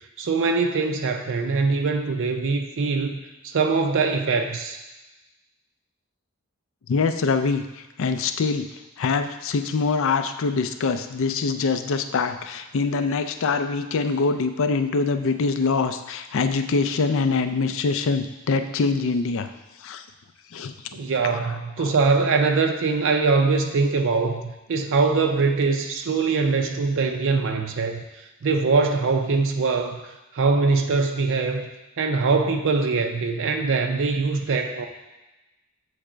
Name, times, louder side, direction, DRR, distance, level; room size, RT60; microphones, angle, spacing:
voice 1, 0.2-4.8 20.9-31.7 32.0-34.9, right 4 dB, 65° right, 5 dB, 0.5 m, -23 dB
voice 2, 6.9-8.6 9.0-19.5 19.8-20.0 20.5-20.7 21.3-21.4 21.8-21.9, left 4 dB, 65° left, 9 dB, 0.4 m, -24 dB
7.1 x 3.3 x 4.9 m, 1.1 s
head